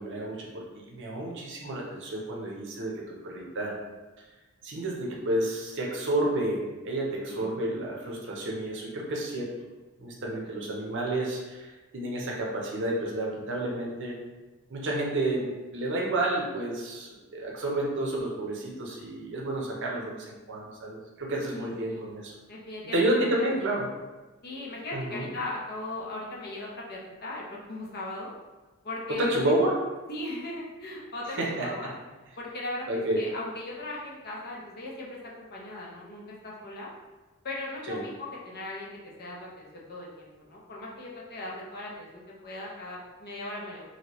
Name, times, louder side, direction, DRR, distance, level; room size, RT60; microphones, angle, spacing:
voice 1, 0.0-3.8 4.6-9.5 10.0-11.7 11.9-14.2 14.7-22.3 22.9-23.9 24.9-25.3 29.1-29.8 31.3-31.7 32.9-33.3 37.9-38.0, right 1 dB, 55° right, -2 dB, 0.6 m, -30 dB
voice 2, 21.4-22.1 22.5-23.5 24.4-28.3 28.8-29.5 30.1-31.9 32.4-36.9 37.4-38.9 39.2-42.1 42.4-43.8, left 2 dB, 45° left, -3 dB, 0.7 m, -38 dB
2.8 x 2.8 x 3.0 m, 1.2 s
head